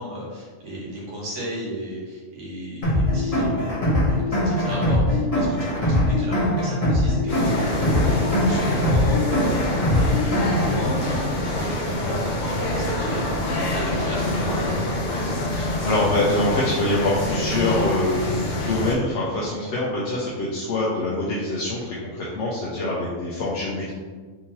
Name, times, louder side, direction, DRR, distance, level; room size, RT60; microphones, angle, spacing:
voice 1, 0.0-14.7, equal, 85° right, -6 dB, 1.5 m, -34 dB
sound 1, 2.8-10.8, left 1 dB, 30° left, 1.0 m, -21 dB
sound 2, 7.3-18.9, left 1 dB, 55° left, 0.5 m, -26 dB
voice 2, 15.5-23.9, left 2 dB, 70° left, -6 dB, 0.9 m, -25 dB
3.6 x 2.8 x 3.0 m, 1.5 s
omnidirectional pair, 1.3 m